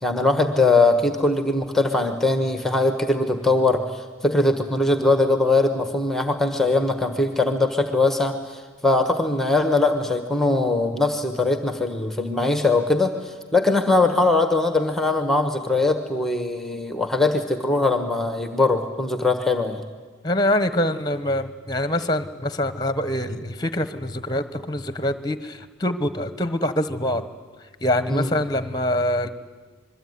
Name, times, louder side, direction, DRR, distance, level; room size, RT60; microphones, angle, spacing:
voice 1, 0.0-19.8 28.1-28.3, left 2 dB, ahead, 6 dB, 1.3 m, -21 dB
voice 2, 20.2-27.2 27.8-29.3, left 1 dB, 20° left, 11 dB, 1.2 m, -24 dB
26.5 x 22.0 x 9.6 m, 1.4 s
head